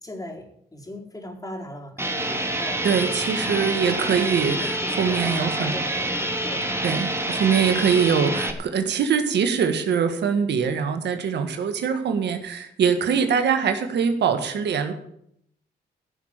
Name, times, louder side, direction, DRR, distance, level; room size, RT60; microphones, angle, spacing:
voice 1, 0.0-3.7 4.5-6.7, left 1 dB, 20° left, 0 dB, 4.4 m, -38 dB
sound 1, 2.0-8.5, right 1 dB, 15° right, 2.4 m, -27 dB
voice 2, 2.8-5.7 6.8-14.9, right 6 dB, 80° right, 7 dB, 1.7 m, -23 dB
15.5 x 6.8 x 9.0 m, 0.72 s
cardioid pair, 60°, 18 cm